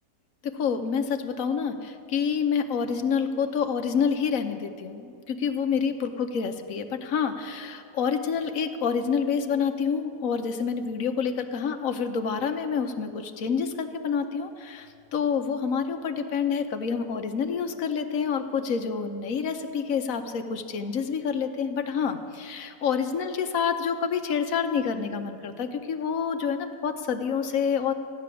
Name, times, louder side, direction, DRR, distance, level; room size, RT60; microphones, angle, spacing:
voice 1, 0.4-27.9, left 6 dB, 60° left, 7 dB, 1.2 m, -28 dB
14.5 x 6.8 x 9.7 m, 2.6 s
omnidirectional pair, 1.7 m